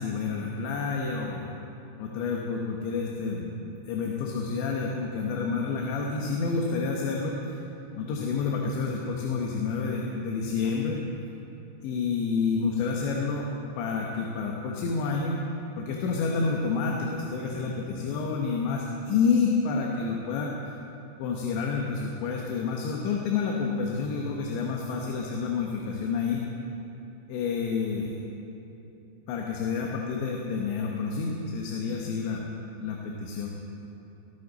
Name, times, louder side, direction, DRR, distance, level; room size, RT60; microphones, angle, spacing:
voice 1, 0.0-1.5 2.0-7.6 8.0-11.0 11.8-13.5 13.8-15.4 15.8-20.6 21.2-26.5 27.3-28.2 29.3-32.5 32.8-33.6, left 5 dB, 85° left, -1 dB, 3.4 m, -29 dB
25.0 x 14.5 x 4.1 m, 2.9 s
omnidirectional pair, 5.1 m